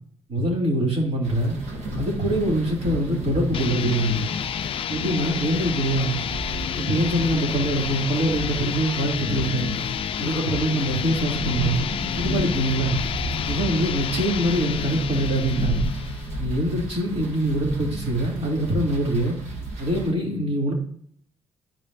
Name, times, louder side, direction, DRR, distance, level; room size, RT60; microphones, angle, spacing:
voice 1, 0.3-1.6 2.0-4.3 4.9-6.2 6.8-9.7 10.2-11.8 12.2-13.0 13.5-15.9 16.4-19.4 19.8-20.7, right 1 dB, 60° right, -1 dB, 2.7 m, -24 dB
sound 1, 1.2-20.1, equal, 80° right, 1.7 m, -33 dB
sound 2, 3.5-16.4, left 9 dB, 55° left, 0.4 m, -30 dB
10.5 x 5.3 x 2.6 m, 0.63 s
cardioid pair, 105°, 11 cm